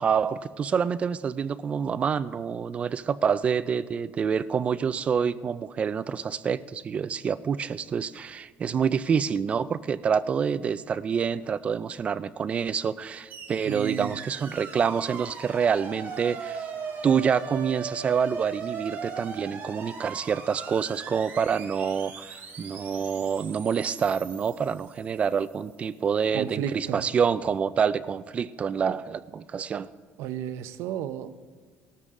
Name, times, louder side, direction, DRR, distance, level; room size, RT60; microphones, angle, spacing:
voice 1, 0.0-16.7 17.0-29.9, right 7 dB, 25° right, 15 dB, 0.3 m, -27 dB
sound 1, 13.3-25.5, right 5 dB, 45° right, 2.3 m, -39 dB
voice 2, 13.7-14.2 26.3-27.1 30.2-31.5, right 10 dB, 75° right, 12 dB, 0.7 m, -33 dB
18.5 x 13.0 x 3.7 m, 1.5 s
cardioid pair, 165°, 5 cm